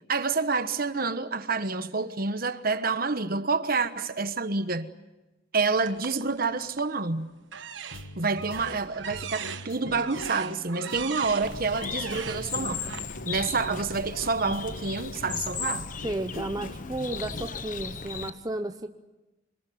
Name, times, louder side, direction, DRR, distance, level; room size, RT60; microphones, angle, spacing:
voice 1, 0.1-4.9 5.5-7.3 8.2-12.8 13.3-15.9, right 4 dB, 50° right, 1.3 m, -28 dB
sound 1, 5.8-7.0 7.5-13.0, right 7 dB, 70° right, 1.3 m, -40 dB
sound 2, 7.9-17.5, left 1 dB, 90° left, 1.4 m, -43 dB
Bird, 11.4-18.3, left 6 dB, 40° left, 1.0 m, -36 dB
voice 2, 16.0-18.9, right 1 dB, 20° right, 0.9 m, -33 dB
26.5 x 21.0 x 9.5 m
head